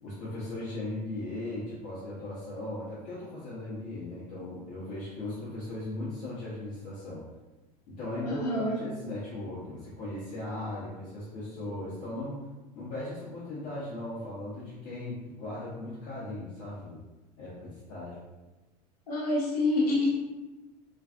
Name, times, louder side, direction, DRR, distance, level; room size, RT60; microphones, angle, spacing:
voice 1, 0.0-7.2 7.9-8.4 8.7-12.4 12.7-17.0 17.4-18.2, left 2 dB, 45° left, -10 dB, 0.9 m, -38 dB
voice 2, 8.2-8.8 19.1-20.1, left 2 dB, 65° left, -4 dB, 0.9 m, -27 dB
2.5 x 2.4 x 2.4 m, 1.1 s
figure-of-eight pair, 80°, 21 cm